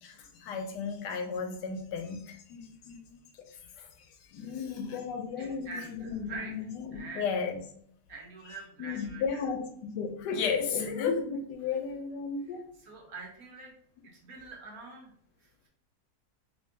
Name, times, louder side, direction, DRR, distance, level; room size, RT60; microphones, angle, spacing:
voice 1, 0.0-3.2 3.8-3.9 4.3-7.6 8.5-12.6, left 5 dB, 90° left, 5 dB, 1.3 m, -34 dB
voice 2, 4.5-5.0 5.4-6.5 6.9-7.3 8.1-9.4 12.8-13.7 14.1-15.1, right 3 dB, 65° right, 0 dB, 1.3 m, -44 dB
3.6 x 2.9 x 2.6 m, 0.66 s
omnidirectional pair, 1.7 m